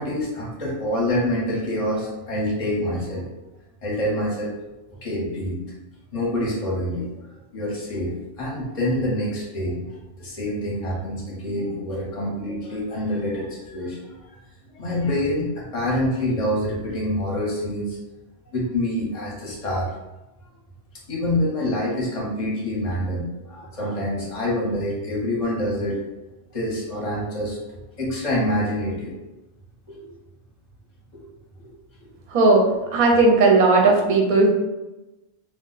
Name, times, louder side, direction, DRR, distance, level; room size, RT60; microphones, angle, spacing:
voice 1, 0.0-3.2 3.8-4.5 5.0-5.6 6.1-7.1 7.5-9.8 10.2-14.0 14.8-18.0 18.5-19.9 21.1-26.0 26.5-27.6 28.0-29.1 29.9-30.1 31.1-31.2 31.6-31.7 32.0-32.1, left 1 dB, 35° left, -4 dB, 0.6 m, -26 dB
voice 2, 32.3-32.6 32.9-34.5, right 3 dB, 50° right, 0 dB, 0.6 m, -16 dB
2.3 x 2.1 x 3.8 m, 1.0 s
omnidirectional pair, 1.3 m